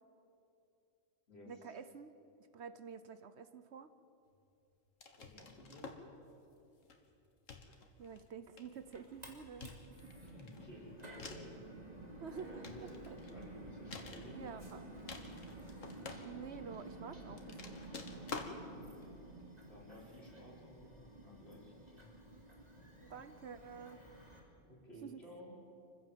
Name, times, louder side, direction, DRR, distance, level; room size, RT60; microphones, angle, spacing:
voice 1, 1.5-2.1 2.5-3.9 7.7-9.8 12.2-13.2 14.3-14.9 16.2-17.9 23.0-24.0 25.0-25.2, right 6 dB, 60° right, 11 dB, 1.1 m, -49 dB
sound 1, 5.0-6.1 6.8-7.1 7.5-8.2 8.6-9.0 9.6-11.6 12.2-13.4 13.9-14.7 15.0-16.7 17.3-18.6, left 4 dB, 85° left, 1.9 m, -49 dB
voice 2, 5.2-5.9 10.2-11.7 12.3-14.6 19.7-22.2 24.6-25.5, left 1 dB, 55° left, -5 dB, 5.5 m, -55 dB
sound 2, 8.7-24.4, right 1 dB, 30° right, 2.9 m, -52 dB
25.5 x 15.5 x 7.5 m, 2.7 s
omnidirectional pair, 1.3 m